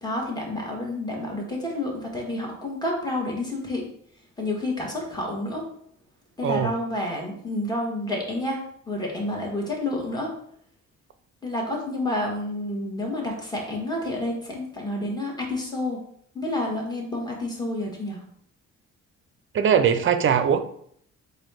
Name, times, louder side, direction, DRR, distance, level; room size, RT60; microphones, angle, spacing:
voice 1, 0.0-3.8 4.4-5.7 6.4-8.6 8.9-10.3 11.4-16.0 16.3-18.2, left 1 dB, 15° left, -1 dB, 1.5 m, -29 dB
voice 2, 19.5-20.6, right 7 dB, 40° right, 10 dB, 0.5 m, -20 dB
4.0 x 2.6 x 4.8 m, 0.65 s
cardioid pair, 90°, 30 cm